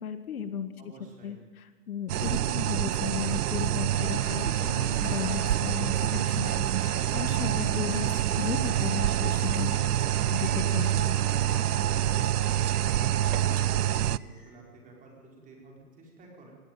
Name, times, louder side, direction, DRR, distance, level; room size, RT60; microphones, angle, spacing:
voice 1, 0.0-0.7 1.2-9.8 10.3-11.2, left 8 dB, 65° left, 10 dB, 1.7 m, -35 dB
voice 2, 0.8-1.4 12.1-12.5 13.6-16.5, right 3 dB, 15° right, -1 dB, 4.8 m, -50 dB
sound 1, 2.1-14.2, right 12 dB, 75° right, 0.7 m, -26 dB
sound 2, 3.9-13.7, left 7 dB, 40° left, 3.4 m, -46 dB
Bird vocalization bird call bird song, 12.4-14.6, right 1 dB, ahead, 4.4 m, -58 dB
18.5 x 17.0 x 9.3 m, 1.4 s
hypercardioid pair, 145°, 46 cm